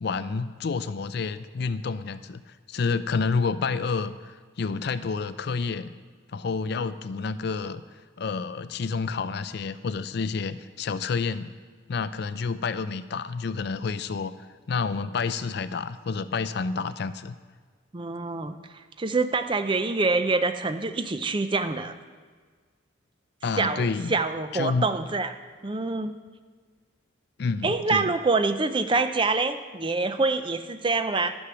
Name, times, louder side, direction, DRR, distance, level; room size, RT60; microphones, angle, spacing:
voice 1, 0.0-2.4 2.7-5.9 6.3-7.8 8.2-11.5 11.9-14.3 14.7-17.4 23.4-24.2 24.5-24.9 27.4-28.1, left 4 dB, 55° left, 14 dB, 0.4 m, -29 dB
voice 2, 17.9-21.9 23.6-25.3 25.6-26.1 27.6-31.4, right 3 dB, 25° right, 10 dB, 0.4 m, -26 dB
11.5 x 6.3 x 6.8 m, 1.5 s
head